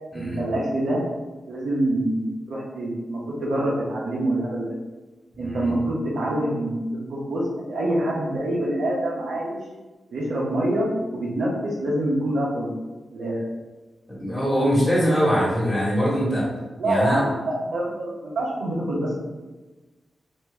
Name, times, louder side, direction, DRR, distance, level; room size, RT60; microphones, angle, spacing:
voice 1, 0.1-1.0 1.5-4.7 5.4-9.6 10.1-12.7 13.1-13.4 16.8-19.1, right 1 dB, 85° right, -4 dB, 0.8 m, -26 dB
voice 2, 5.4-5.7 14.1-16.5 16.8-17.2, equal, 20° left, -6 dB, 1.3 m, -22 dB
2.9 x 2.6 x 3.4 m, 1.2 s
cardioid pair, 55°, 0 cm